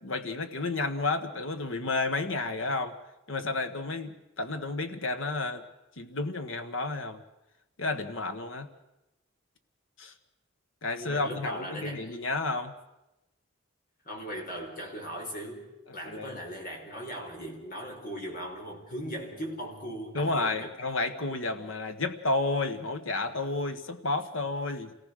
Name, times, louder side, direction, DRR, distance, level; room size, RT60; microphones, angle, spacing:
voice 1, 0.0-3.0 3.3-5.6 6.0-7.2 7.8-8.7 10.0-10.1 10.8-12.7 16.0-16.4 20.1-24.9, left 3 dB, 80° left, 7 dB, 1.6 m, -31 dB
voice 2, 10.9-12.2 14.0-15.7 15.9-20.7 21.3-21.4, equal, 45° left, 2 dB, 4.8 m, -39 dB
27.5 x 19.0 x 6.5 m, 0.94 s
head